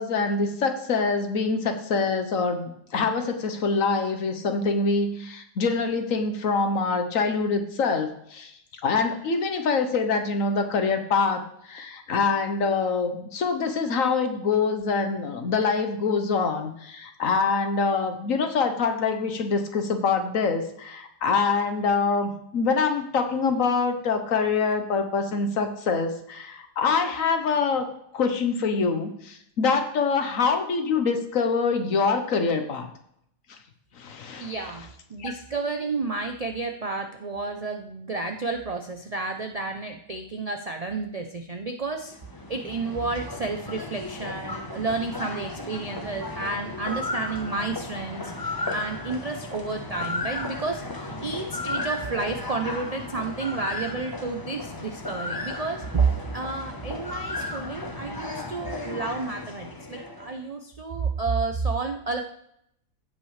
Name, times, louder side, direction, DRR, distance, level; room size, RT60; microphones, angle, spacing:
voice 1, 0.0-8.5 8.8-27.9 28.1-32.9 34.0-34.5 35.2-35.3, left 4 dB, 70° left, 7 dB, 1.4 m, -25 dB
voice 2, 34.4-42.2 42.5-56.1 56.3-62.2, right 4 dB, 50° right, 4 dB, 0.4 m, -31 dB
sound 1, 42.0-60.4, left 2 dB, 20° left, 0.8 m, -34 dB
15.5 x 5.4 x 3.2 m, 0.73 s
omnidirectional pair, 1.5 m